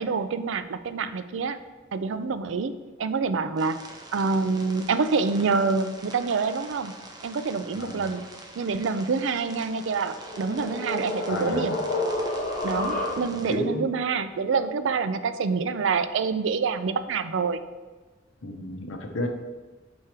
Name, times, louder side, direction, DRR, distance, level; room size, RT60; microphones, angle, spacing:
voice 1, 0.0-1.6 1.9-2.7 3.0-3.8 4.1-6.9 7.2-8.2 8.6-11.8 12.6-17.6, right 4 dB, 75° right, 11 dB, 0.4 m, -26 dB
sound 1, 3.6-13.5, right 2 dB, 20° right, 0.7 m, -45 dB
voice 2, 7.7-8.1 11.3-11.8 13.3-13.9 18.4-19.3, left 1 dB, 85° left, 4 dB, 0.9 m, -31 dB
sound 2, 9.8-13.6, left 1 dB, 40° left, 1.1 m, -30 dB
6.2 x 4.7 x 4.4 m, 1.3 s
head